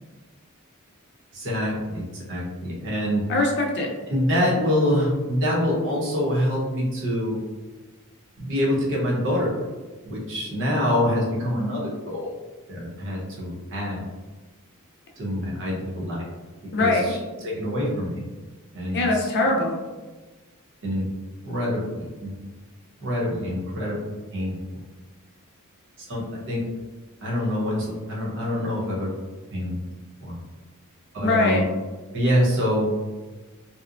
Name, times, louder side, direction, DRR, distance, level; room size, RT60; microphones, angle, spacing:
voice 1, 1.3-3.3 4.1-7.4 8.4-9.5 10.0-12.3 12.7-14.0 15.2-16.2 16.8-17.2 17.4-18.2 18.7-19.3 20.8-21.0 21.4-22.3 23.0-24.0 24.3-24.5 26.0-26.6 27.2-29.1 29.5-29.8 30.2-30.3 31.1-31.6 32.1-33.0, equal, 60° right, -5 dB, 0.9 m, -25 dB
voice 2, 3.3-3.9 16.7-17.1 18.9-19.8 31.2-31.7, left 2 dB, 50° left, 0 dB, 0.4 m, -22 dB
2.7 x 2.1 x 2.5 m, 1.3 s
head